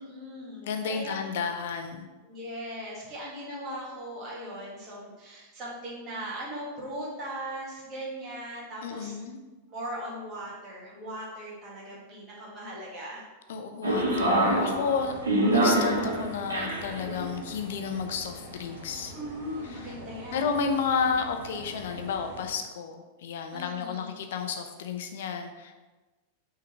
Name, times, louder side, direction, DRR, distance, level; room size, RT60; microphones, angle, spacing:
voice 1, 0.0-1.2 2.2-9.2 9.7-13.2 19.1-20.4 23.5-24.1, equal, 30° right, -6 dB, 2.0 m, -39 dB
voice 2, 0.6-2.1 8.8-9.4 13.5-15.2 15.5-19.1 19.6-19.9 20.3-25.8, left 6 dB, 55° left, 5 dB, 0.7 m, -32 dB
sound 1, 13.8-22.5, right 1 dB, 70° right, 1.4 m, -29 dB
5.7 x 3.8 x 4.6 m, 1.2 s
figure-of-eight pair, 90°, 0 cm